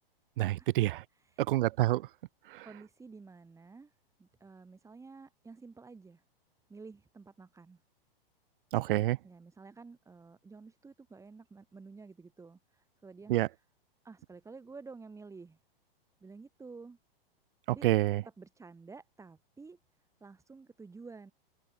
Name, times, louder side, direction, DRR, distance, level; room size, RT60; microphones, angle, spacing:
voice 1, 0.4-1.0 1.5-2.0 2.5-2.6 8.7-9.2 13.3-13.5 17.8-18.2, right 16 dB, 65° right, 0.5 m, -27 dB
voice 2, 1.1-1.5 2.6-6.2 6.7-7.8 9.2-13.6 14.0-15.6 16.2-17.0 17.7-17.9 18.2-19.8 20.2-21.3, right 4 dB, 10° right, 5.0 m, -51 dB
hypercardioid pair, 130°, 29 cm